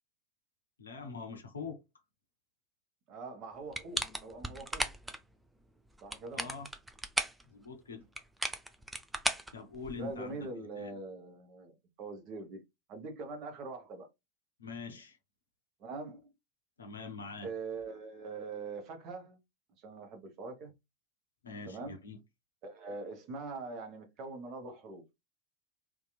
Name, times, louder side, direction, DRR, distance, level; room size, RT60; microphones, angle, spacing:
voice 1, 0.8-1.8 6.3-6.7 7.5-8.0 9.5-10.4 10.8-10.9 14.6-15.2 16.8-17.5 21.4-22.2, left 5 dB, 75° left, 0.5 m, -43 dB
voice 2, 3.1-4.9 6.0-6.5 9.9-12.6 12.9-14.1 15.8-16.3 17.4-19.4 19.8-20.7 21.7-22.1 22.6-25.0, right 3 dB, 40° right, 0.8 m, -43 dB
sound 1, 3.7-5.2 5.9-7.4 8.2-10.2, right 1 dB, 5° right, 0.4 m, -36 dB
2.8 x 2.3 x 2.2 m
figure-of-eight pair, 85°, 0 cm